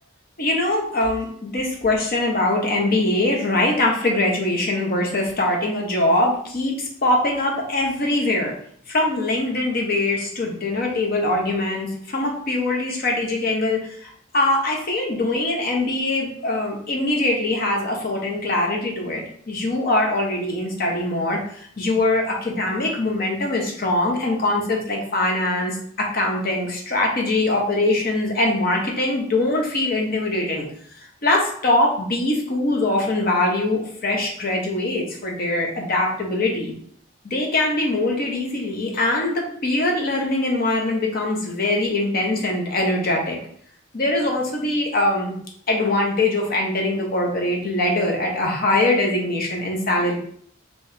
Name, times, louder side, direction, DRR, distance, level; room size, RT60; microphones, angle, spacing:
voice 1, 0.4-8.5 8.9-30.7 31.2-36.7 37.2-43.4 43.9-45.4 45.7-50.1, left 2 dB, 50° left, 0 dB, 0.8 m, -22 dB
3.5 x 3.0 x 2.7 m, 0.62 s
head